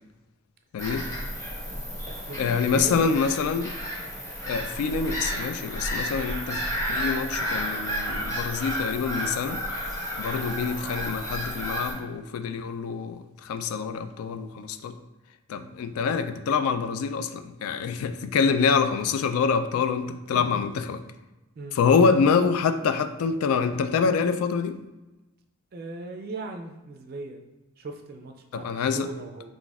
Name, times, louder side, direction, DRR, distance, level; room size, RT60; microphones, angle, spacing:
voice 1, 0.7-1.1 2.4-3.7 4.5-9.6 10.2-15.0 15.5-21.0 21.7-24.8 28.5-29.1, left 5 dB, 85° left, 10 dB, 0.3 m, -26 dB
Bird vocalization bird call bird song / Gull seagull, 0.8-11.9, equal, 15° left, 0.9 m, -32 dB
voice 2, 2.0-3.0 10.3-10.5 15.6-15.8 21.6-21.8 25.7-27.4 27.8-29.5, right 2 dB, 45° right, 4 dB, 0.3 m, -39 dB
4.8 x 4.0 x 2.3 m, 1.0 s
head